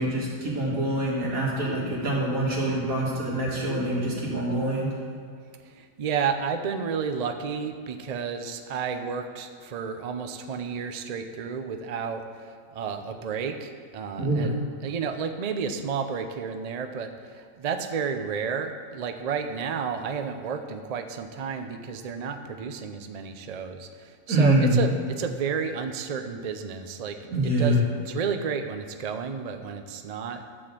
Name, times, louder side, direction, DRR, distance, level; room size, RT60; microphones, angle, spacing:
voice 1, 0.0-4.9 14.2-14.5 24.3-24.8 27.3-27.8, right 1 dB, 90° right, -5 dB, 2.6 m, -25 dB
voice 2, 5.6-14.5 14.8-27.2 27.4-30.4, right 6 dB, 50° right, 6 dB, 0.5 m, -31 dB
11.0 x 4.3 x 7.5 m, 2.2 s
omnidirectional pair, 1.4 m